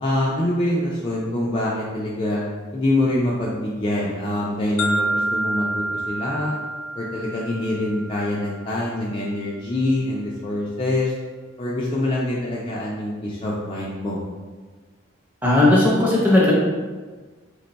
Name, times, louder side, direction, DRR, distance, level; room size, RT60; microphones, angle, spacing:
voice 1, 0.0-2.4 2.7-6.6 7.0-11.1 11.6-14.2, left 1 dB, 25° left, -5 dB, 0.3 m, -25 dB
sound 1, 4.8-8.8, right 1 dB, 80° left, 0.5 m, -28 dB
voice 2, 15.4-16.5, left 2 dB, 10° right, -6 dB, 0.7 m, -16 dB
3.3 x 2.2 x 3.9 m, 1.4 s
head